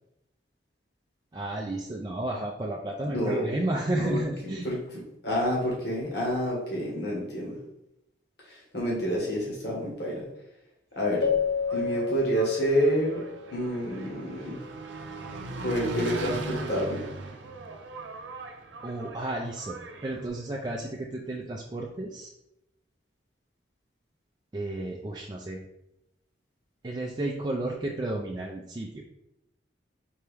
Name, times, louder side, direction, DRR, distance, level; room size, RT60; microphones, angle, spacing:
voice 1, 1.3-4.7 18.8-22.3 24.5-25.6 26.8-29.0, right 1 dB, 25° right, -2 dB, 0.3 m, -32 dB
voice 2, 3.0-3.5 3.9-4.2 4.6-4.8 5.2-7.6 8.5-10.2 10.9-11.3 11.7-13.2 13.5-14.6 15.6-17.0, equal, 60° left, -3 dB, 1.4 m, -28 dB
Keyboard (musical), 11.2-13.7, left 6 dB, 80° left, 0.7 m, -30 dB
Engine, 11.4-20.3, right 3 dB, 80° right, 0.5 m, -39 dB
4.5 x 2.9 x 3.4 m, 0.86 s
head